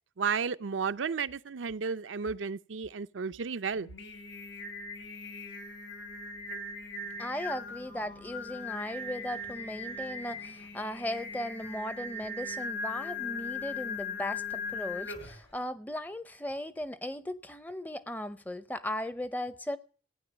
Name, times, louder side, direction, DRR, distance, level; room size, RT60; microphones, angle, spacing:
voice 1, 0.2-3.9, right 5 dB, 90° right, 0.6 m, -33 dB
Singing, 3.7-15.5, left 3 dB, 80° left, 3.0 m, -39 dB
voice 2, 7.2-19.8, left 1 dB, 10° left, 0.6 m, -37 dB
15.5 x 9.5 x 7.1 m
head